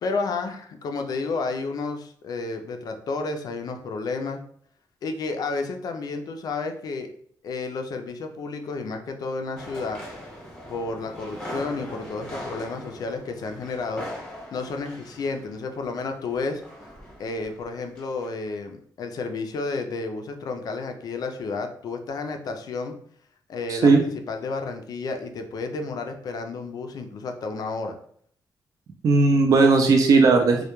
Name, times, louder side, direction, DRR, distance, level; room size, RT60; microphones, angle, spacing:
voice 1, 0.0-4.4 5.0-7.1 7.4-10.0 10.7-14.1 14.5-16.6 17.2-22.9 23.5-28.0, left 3 dB, 55° left, 6 dB, 0.3 m, -31 dB
sound 1, 9.6-17.7 18.0-18.3, equal, 10° left, 0.8 m, -40 dB
voice 2, 23.7-24.0 29.0-30.6, right 3 dB, 50° right, 2 dB, 0.3 m, -17 dB
2.1 x 2.1 x 2.9 m, 0.62 s
cardioid pair, 125°, 8 cm